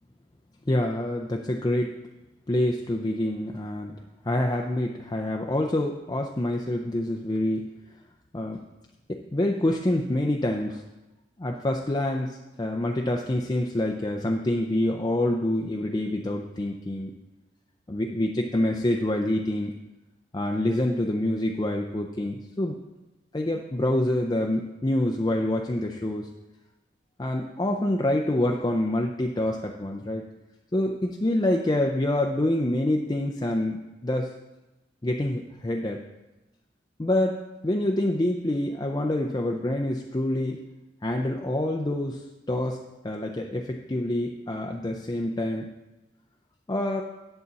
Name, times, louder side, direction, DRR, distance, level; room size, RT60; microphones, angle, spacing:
voice 1, 0.7-1.9 2.5-4.0 4.3-7.6 8.3-8.6 9.1-10.8 11.4-17.1 17.9-19.7 20.3-22.7 23.3-26.3 27.2-30.2 30.7-34.3 35.0-36.0 37.0-37.4 37.6-40.6 41.0-42.8 43.0-45.7 46.7-47.0, left 1 dB, 20° left, 1 dB, 0.5 m, -26 dB
11.0 x 6.8 x 4.0 m, 1.0 s
head